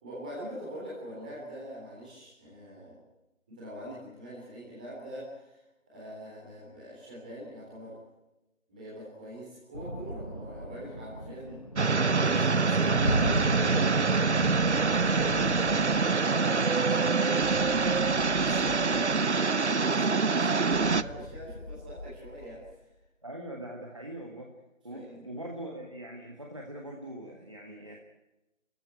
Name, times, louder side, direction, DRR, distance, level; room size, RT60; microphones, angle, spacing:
voice 1, 0.0-3.0 3.5-5.6 5.9-8.0 8.7-11.7 12.1-14.1 14.7-22.7 24.9-25.3, equal, 5° right, -6 dB, 3.4 m, -43 dB
sound 1, 9.7-15.9, right 1 dB, 25° left, 1.1 m, -35 dB
sound 2, 11.8-21.0, right 4 dB, 60° right, 0.8 m, -25 dB
voice 2, 13.6-15.0 23.2-24.5 24.8-28.0, right 1 dB, 25° right, 0 dB, 1.7 m, -42 dB
sound 3, 14.4-16.7 17.4-19.7 20.7-23.0, left 2 dB, 55° left, 1.5 m, -44 dB
28.5 x 15.0 x 9.1 m, 0.99 s
figure-of-eight pair, 175°, 39 cm